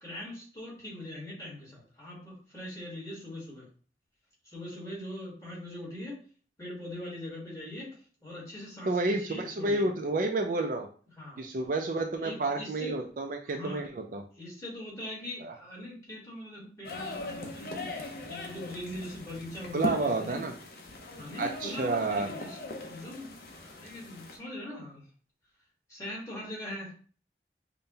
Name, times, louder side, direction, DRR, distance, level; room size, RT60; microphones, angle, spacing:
voice 1, 0.0-3.7 4.4-6.2 6.6-9.9 11.2-11.5 12.2-12.9 13.5-13.8 14.3-17.9 18.3-20.5 21.2-25.0 25.9-26.9, left 1 dB, 20° left, -5 dB, 1.4 m, -41 dB
voice 2, 8.8-10.9 11.4-14.2 15.4-15.5 19.7-20.5 21.4-22.3, right 2 dB, 45° right, 4 dB, 0.4 m, -30 dB
sound 1, 16.8-24.4, left 2 dB, 55° left, 0.7 m, -40 dB
5.3 x 2.2 x 2.7 m, 0.42 s
head